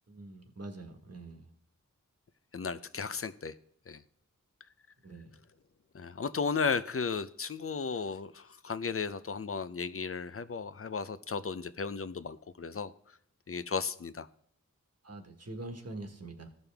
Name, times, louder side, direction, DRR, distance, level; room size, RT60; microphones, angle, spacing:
voice 1, 0.1-1.5 5.0-5.4 15.0-16.5, right 2 dB, 50° right, 4 dB, 1.4 m, -44 dB
voice 2, 2.5-3.5 3.9-4.0 5.9-12.9 13.5-14.3, left 5 dB, 45° left, 13 dB, 0.6 m, -35 dB
13.5 x 5.3 x 3.5 m, 0.66 s
cardioid pair, 45°, 32 cm